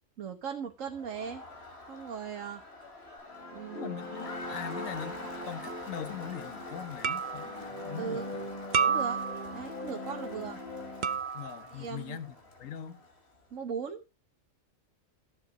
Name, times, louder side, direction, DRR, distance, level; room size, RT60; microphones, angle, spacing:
voice 1, 0.2-1.4 1.9-2.6 3.5-4.0 8.0-8.3 8.8-9.2 9.5-10.6 11.7-12.2 13.5-14.0, right 7 dB, 75° right, 1.6 m, -38 dB
Crowd, 0.8-13.4, left 2 dB, 55° left, 3.4 m, -45 dB
sound 1, 3.3-11.2, left 1 dB, 30° left, 7.9 m, -42 dB
voice 2, 3.7-8.4 11.3-13.0, left 9 dB, 90° left, 1.3 m, -41 dB
sound 2, 5.6-5.9 7.0-7.6 8.7-9.6 11.0-11.7, right 6 dB, 45° right, 0.7 m, -30 dB
14.5 x 7.8 x 5.1 m
omnidirectional pair, 1.3 m